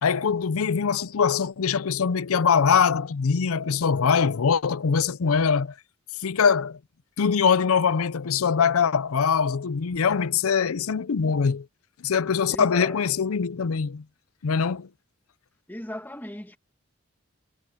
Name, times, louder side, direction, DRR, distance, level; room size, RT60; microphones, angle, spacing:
voice 1, 0.0-5.7 6.2-6.8 7.2-11.7 12.0-14.0 14.4-14.9, left 6 dB, 85° left, 0.5 m, -23 dB
voice 2, 12.5-13.0 15.7-16.6, left 1 dB, 10° left, 1.4 m, -37 dB
head